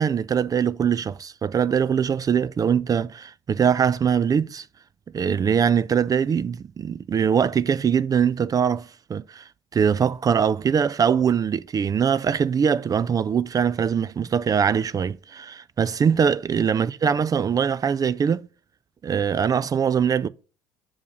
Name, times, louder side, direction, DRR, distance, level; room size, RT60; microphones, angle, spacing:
voice 1, 0.0-4.7 5.1-18.5 19.0-20.3, right 7 dB, 30° right, 0.4 m, -22 dB
5.7 x 4.8 x 5.3 m
hypercardioid pair, 65°, 12 cm